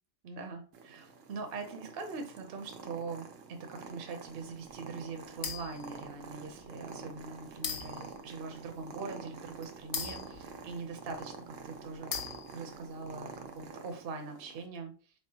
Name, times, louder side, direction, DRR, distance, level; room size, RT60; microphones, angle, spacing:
voice 1, 0.2-15.1, right 4 dB, 55° right, 5 dB, 0.8 m, -42 dB
Purr, 0.7-14.7, right 5 dB, 80° right, 1.0 m, -48 dB
sound 1, 5.4-5.9 6.6-6.7 7.6-8.2 9.9-11.1 12.1-12.8, left 7 dB, 60° left, 0.8 m, -39 dB
4.5 x 3.6 x 2.7 m, 0.40 s
omnidirectional pair, 1.3 m